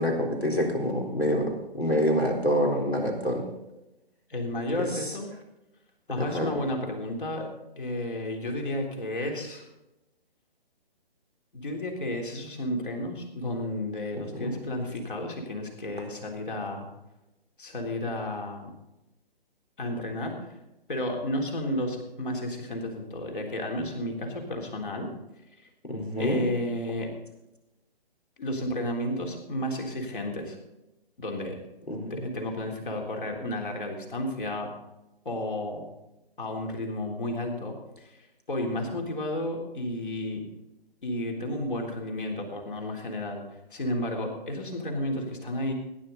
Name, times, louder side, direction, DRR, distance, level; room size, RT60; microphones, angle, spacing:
voice 1, 0.0-3.4 6.2-6.5 14.3-14.5 25.9-26.4 31.9-32.1, equal, 90° left, 1 dB, 4.1 m, -26 dB
voice 2, 4.3-5.3 6.1-7.5 7.8-9.6 11.5-16.9 17.6-18.7 19.8-20.5 20.9-25.1 25.6-25.7 26.2-27.1 28.4-30.6 31.2-31.6 32.1-34.7 35.3-35.8 36.4-40.5 41.0-43.4 43.7-45.7, left 1 dB, 55° left, 2 dB, 3.6 m, -32 dB
17.5 x 10.0 x 4.1 m, 0.95 s
figure-of-eight pair, 140°, 30 cm